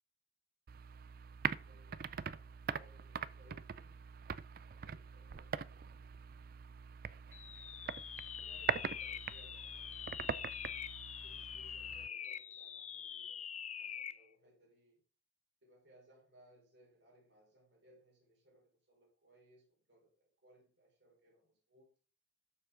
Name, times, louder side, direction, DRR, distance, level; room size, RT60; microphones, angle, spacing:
sound 1, 0.7-12.1, right 7 dB, 55° right, 0.4 m, -43 dB
voice 1, 1.5-4.2 4.6-6.0 8.4-10.5 11.1-15.0 15.6-21.9, equal, 80° right, 4.8 m, -67 dB
sound 2, 7.3-14.3, left 9 dB, 40° left, 0.5 m, -45 dB
12.5 x 7.0 x 3.8 m
head